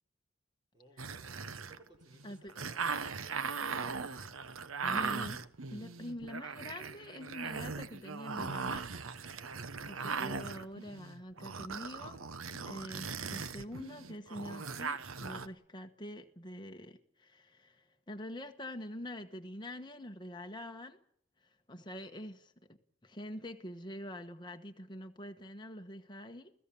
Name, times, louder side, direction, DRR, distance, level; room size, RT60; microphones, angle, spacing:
voice 1, 0.7-1.4 1.7-2.2 2.5-3.0 9.4-9.7, right 1 dB, 20° right, 3.9 m, -60 dB
sound 1, 1.0-15.5, right 5 dB, 90° right, 1.0 m, -39 dB
voice 2, 2.2-2.5 3.9-4.4 4.8-8.9 9.9-12.2 12.5-21.0 21.4-26.5, left 1 dB, 20° left, 1.3 m, -45 dB
29.5 x 16.0 x 7.0 m
head